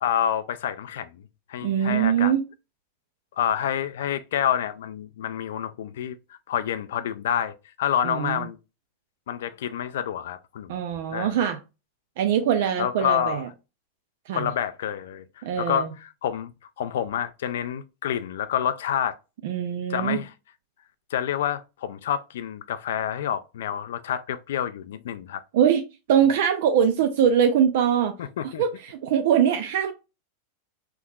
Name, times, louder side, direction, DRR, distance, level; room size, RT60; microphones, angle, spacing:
voice 1, 0.0-1.1 1.5-2.3 3.4-6.2 6.5-8.6 9.3-10.8 11.1-11.4 12.8-13.4 14.3-16.5 16.8-19.2 19.9-20.3 21.1-25.4 28.2-28.6, left 9 dB, 80° left, 0.3 m, -28 dB
voice 2, 1.6-2.4 8.0-8.5 10.7-11.6 12.2-13.5 14.3-14.5 15.4-15.9 19.4-20.2 25.5-25.8 26.1-28.2 28.4-29.9, right 8 dB, 70° right, 0.4 m, -22 dB
3.5 x 2.9 x 2.3 m
supercardioid pair, 130°, 0 cm